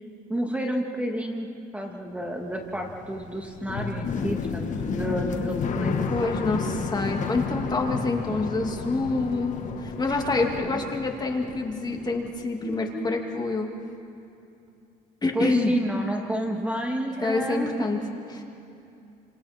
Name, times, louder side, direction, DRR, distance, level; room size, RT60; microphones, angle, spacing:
voice 1, 0.3-6.4 10.6-10.8 15.3-17.9, equal, 5° right, 1 dB, 2.2 m, -30 dB
sound 1, 2.2-12.4 12.6-13.5, left 5 dB, 45° left, 1.6 m, -32 dB
voice 2, 6.1-13.7 15.2-15.7 17.2-18.0 18.3-18.4, left 3 dB, 25° left, 1 dB, 2.3 m, -27 dB
30.0 x 26.5 x 4.3 m, 2.7 s
cardioid pair, 110°, 17 cm